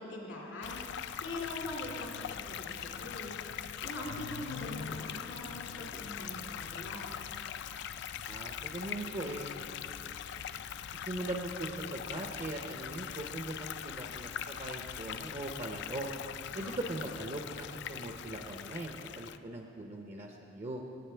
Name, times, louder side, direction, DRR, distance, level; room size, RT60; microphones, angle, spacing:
voice 1, 0.0-7.0 16.5-16.7, left 1 dB, 80° left, -3 dB, 2.3 m, -43 dB
sound 1, 0.6-19.4, left 9 dB, 60° left, 0.3 m, -41 dB
voice 2, 8.3-9.5 11.0-16.1 16.5-20.8, right 1 dB, 35° right, 2 dB, 0.6 m, -40 dB
16.5 x 8.9 x 3.4 m, 3.0 s
head